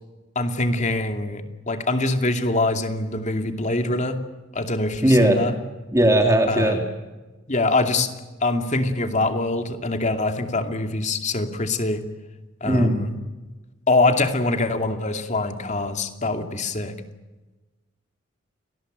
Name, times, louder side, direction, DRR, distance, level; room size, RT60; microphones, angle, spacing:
voice 1, 0.3-4.2 4.5-5.5 6.5-6.8 7.5-8.1 8.4-12.0 12.6-13.1 13.9-17.0, left 2 dB, 35° left, 6 dB, 2.6 m, -24 dB
voice 2, 5.0-5.4 5.9-6.8 12.6-13.0, right 1 dB, 15° right, 3 dB, 3.0 m, -17 dB
29.5 x 19.0 x 9.2 m, 1.2 s
head